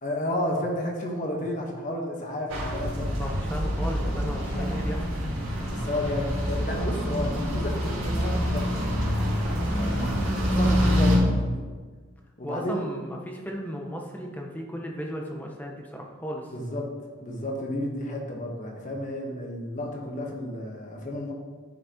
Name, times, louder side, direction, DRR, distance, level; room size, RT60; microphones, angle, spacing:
voice 1, 0.0-3.1 4.5-4.7 5.7-9.1 9.8-10.1 10.5-11.6 12.4-12.8 16.5-16.9 17.2-21.3, left 1 dB, 40° left, 0 dB, 1.2 m, -32 dB
sound 1, 2.5-11.2, equal, 85° right, 2.5 m, -26 dB
voice 2, 3.2-5.0 12.4-16.5, equal, 10° left, 0 dB, 0.8 m, -35 dB
10.5 x 5.9 x 3.0 m, 1.5 s
head